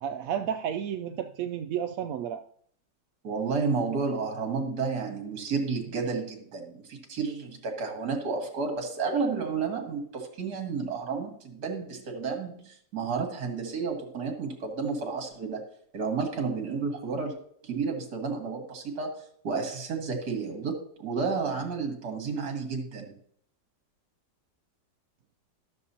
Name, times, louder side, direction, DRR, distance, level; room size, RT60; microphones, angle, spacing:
voice 1, 0.0-2.4, right 9 dB, 75° right, 7 dB, 0.7 m, -32 dB
voice 2, 3.2-15.6 15.9-17.4 17.6-23.2, right 5 dB, 60° right, 3 dB, 2.1 m, -31 dB
13.0 x 6.7 x 2.8 m, 0.63 s
omnidirectional pair, 2.0 m